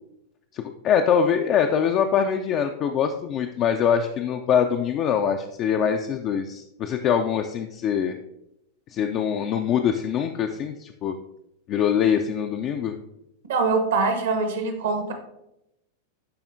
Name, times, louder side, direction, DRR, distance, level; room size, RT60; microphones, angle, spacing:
voice 1, 0.5-8.2 8.9-11.2 11.7-12.9, left 8 dB, 40° left, 5 dB, 0.4 m, -23 dB
voice 2, 13.5-15.1, right 4 dB, 65° right, 5 dB, 1.1 m, -23 dB
11.0 x 4.2 x 2.6 m, 0.84 s
figure-of-eight pair, 90°, 0 cm